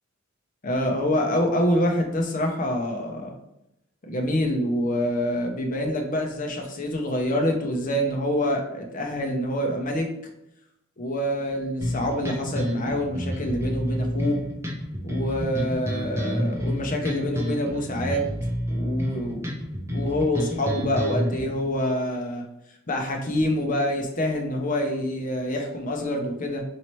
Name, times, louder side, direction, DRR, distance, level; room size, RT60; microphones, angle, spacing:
voice 1, 0.6-3.4 4.0-10.1 11.0-14.4 15.0-18.2 18.7-19.5 19.9-22.4 22.9-26.6, left 1 dB, 40° left, 2 dB, 0.6 m, -26 dB
sound 1, 11.8-21.4, equal, 15° right, 0.6 m, -29 dB
4.2 x 2.8 x 3.1 m, 0.83 s
head